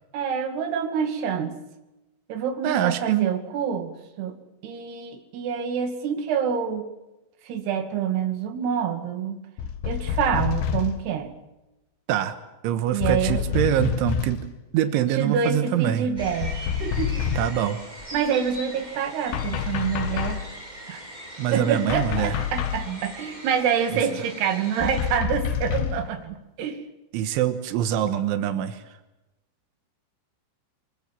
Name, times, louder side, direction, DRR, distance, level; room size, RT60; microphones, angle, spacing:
voice 1, 0.1-1.6 2.3-3.9 4.2-4.4 4.6-6.9 7.4-9.4 9.8-11.3 12.9-13.7 15.1-17.3 18.1-20.5 20.9-21.0 21.5-26.8, right 7 dB, 65° right, 5 dB, 4.1 m, -27 dB
voice 2, 2.6-3.3 12.1-12.4 12.6-14.4 14.7-16.1 17.4-17.8 21.4-22.4 22.9-23.0 23.9-24.0 27.1-28.8, right 11 dB, 90° right, 9 dB, 3.7 m, -24 dB
sound 1, 9.6-11.1 13.0-14.5 16.2-17.7 19.3-20.5 21.9-22.9 24.8-26.1, left 8 dB, 70° left, 3.6 m, -28 dB
sound 2, 16.2-25.2, right 1 dB, 10° right, 4.4 m, -41 dB
24.0 x 23.5 x 7.3 m, 0.99 s
omnidirectional pair, 5.4 m